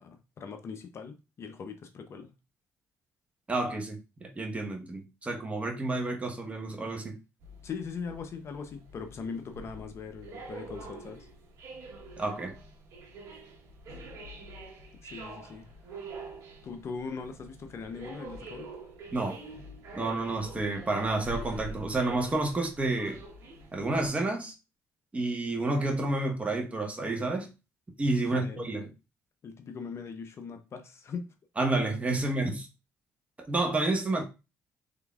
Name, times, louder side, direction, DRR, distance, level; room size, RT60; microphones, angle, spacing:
voice 1, 0.0-2.3 7.6-11.3 15.0-15.7 16.6-18.7 28.2-28.7 29.4-31.3, left 5 dB, 50° left, 0.6 m, -40 dB
voice 2, 3.5-7.1 12.2-12.5 19.1-19.4 19.9-23.2 23.7-24.5 25.1-27.5 28.0-28.9 31.6-32.7 33.5-34.2, right 2 dB, 25° right, 1.1 m, -30 dB
sound 1, 7.4-24.1, right 2 dB, 70° right, 1.1 m, -46 dB
3.8 x 3.4 x 2.3 m
supercardioid pair, 75°, 6 cm